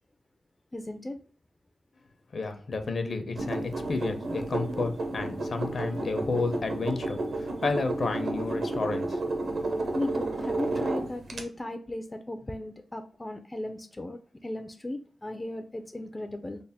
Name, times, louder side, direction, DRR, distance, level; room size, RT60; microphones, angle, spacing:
voice 1, 0.7-1.2 9.9-16.6, left 1 dB, 20° left, 6 dB, 0.3 m, -36 dB
voice 2, 2.3-9.2, left 3 dB, 55° left, 7 dB, 0.6 m, -31 dB
sound 1, 3.4-11.4, right 2 dB, 80° right, 0.7 m, -32 dB
3.3 x 2.1 x 4.1 m, 0.43 s
wide cardioid pair, 100°, 0 cm